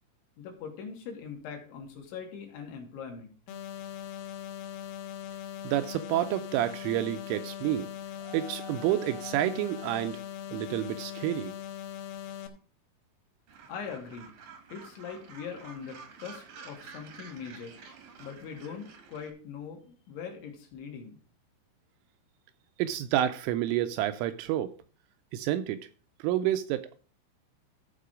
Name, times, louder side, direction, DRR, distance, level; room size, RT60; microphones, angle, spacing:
voice 1, 0.4-3.3 13.7-14.3 14.7-17.8 18.2-21.2, left 6 dB, 70° left, 2 dB, 3.8 m, -41 dB
sound 1, 3.5-12.5, left 11 dB, 85° left, 3.8 m, -40 dB
voice 2, 5.6-7.9 8.2-10.2 10.5-11.5 22.8-24.7 25.3-25.9 26.2-26.9, right 12 dB, 85° right, 9 dB, 2.9 m, -29 dB
Gull seagull, 13.5-19.3, right 5 dB, 65° right, 2.0 m, -50 dB
14.0 x 4.8 x 5.1 m, 0.40 s
omnidirectional pair, 6.0 m